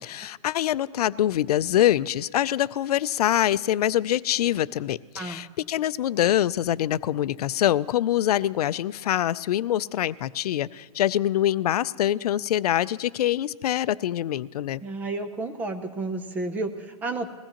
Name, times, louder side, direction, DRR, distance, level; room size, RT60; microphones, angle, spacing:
voice 1, 0.0-14.8, left 12 dB, 85° left, 18 dB, 0.4 m, -24 dB
voice 2, 14.8-17.3, right 2 dB, 10° right, 8 dB, 0.4 m, -31 dB
21.0 x 16.5 x 2.9 m, 1.3 s
hypercardioid pair, 170°, 19 cm